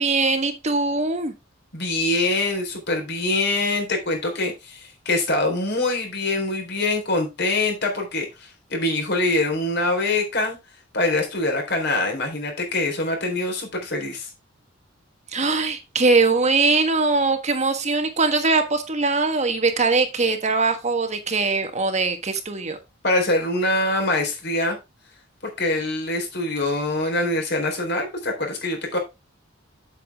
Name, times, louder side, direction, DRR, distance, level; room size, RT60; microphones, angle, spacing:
voice 1, 0.0-1.3 15.3-22.8, right 3 dB, 35° right, 7 dB, 1.4 m, -21 dB
voice 2, 1.7-10.6 10.9-14.3 23.0-24.8 25.6-29.0, left 2 dB, 55° left, 3 dB, 3.9 m, -24 dB
8.3 x 8.2 x 3.5 m, 0.24 s
head